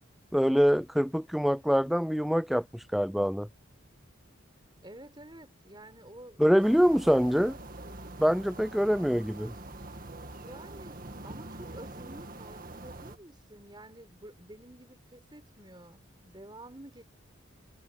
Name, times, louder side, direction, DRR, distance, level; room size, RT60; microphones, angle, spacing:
voice 1, 0.3-2.6 2.9-3.5 6.4-7.5 8.2-9.5, equal, ahead, 0.5 m, -24 dB
voice 2, 4.8-7.5 10.3-17.0, right 1 dB, 20° right, 4.9 m, -50 dB
sound 1, 6.6-13.2, right 2 dB, 45° right, 2.0 m, -44 dB
head